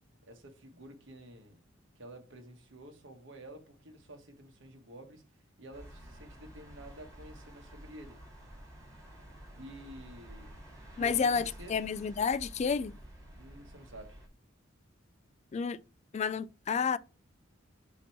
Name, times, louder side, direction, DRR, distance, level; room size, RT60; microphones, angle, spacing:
voice 1, 0.2-1.6 1.9-5.2 5.6-8.2 9.6-10.5 10.9-11.7 13.3-14.2, right 1 dB, 65° right, 1.4 m, -50 dB
sound 1, 5.7-14.3, right 1 dB, 15° right, 2.5 m, -51 dB
voice 2, 11.0-13.0 15.5-15.8 16.1-17.0, left 6 dB, 35° left, 0.3 m, -30 dB
7.9 x 3.0 x 4.5 m
head